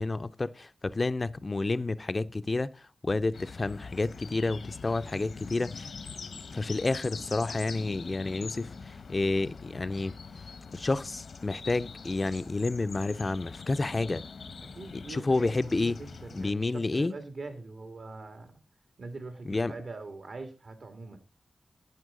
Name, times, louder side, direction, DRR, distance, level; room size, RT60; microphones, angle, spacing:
voice 1, 0.0-5.9 6.5-10.1 10.7-14.2 14.9-16.0 16.3-17.1 19.5-19.7, left 3 dB, 35° left, 0.4 m, -30 dB
sound 1, 3.3-16.5, left 5 dB, 90° left, 1.1 m, -43 dB
voice 2, 14.8-18.6 19.0-21.2, right 3 dB, 70° right, 2.0 m, -43 dB
11.0 x 9.5 x 3.7 m
wide cardioid pair, 125°, 0 cm